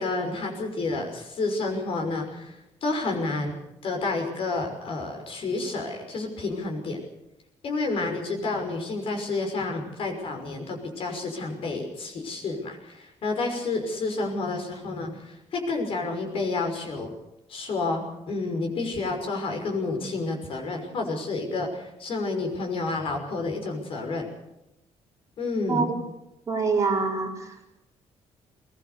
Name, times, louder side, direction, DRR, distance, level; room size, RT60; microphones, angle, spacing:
voice 1, 0.0-7.0 7.6-17.1 17.5-24.3 25.4-25.9, left 3 dB, 50° left, 3 dB, 5.9 m, -30 dB
voice 2, 26.5-27.7, right 4 dB, 25° right, 0 dB, 4.1 m, -26 dB
21.5 x 21.0 x 6.9 m, 0.89 s
cardioid pair, 160°, 12 cm